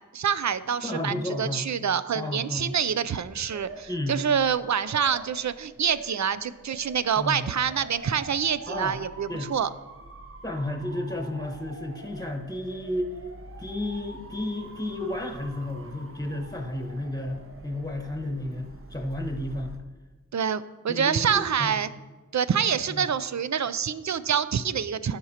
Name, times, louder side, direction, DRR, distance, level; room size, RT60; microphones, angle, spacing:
voice 1, 0.0-9.7 20.3-21.9 22.3-25.2, right 7 dB, 60° right, 15 dB, 0.4 m, -26 dB
voice 2, 0.8-1.6 2.1-2.8 3.9-4.2 7.2-7.4 8.7-9.0 9.3-9.5 10.4-13.1 13.6-19.7 20.9-21.7 22.9-23.1, left 1 dB, 10° left, 4 dB, 1.2 m, -32 dB
Motor vehicle (road) / Siren, 3.0-19.8, right 2 dB, 40° right, 0.9 m, -45 dB
16.0 x 6.0 x 2.9 m, 1.2 s
wide cardioid pair, 65°, 33 cm